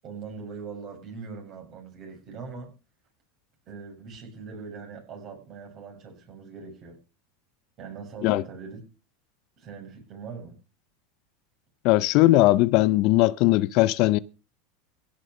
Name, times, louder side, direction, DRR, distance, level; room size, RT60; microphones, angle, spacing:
voice 1, 0.0-2.7 3.7-7.0 7.8-8.8 9.6-10.6, right 5 dB, 45° right, 7.4 m, -41 dB
voice 2, 11.8-14.2, left 18 dB, 55° left, 0.5 m, -19 dB
16.5 x 6.2 x 6.4 m
hypercardioid pair, 95°, 0 cm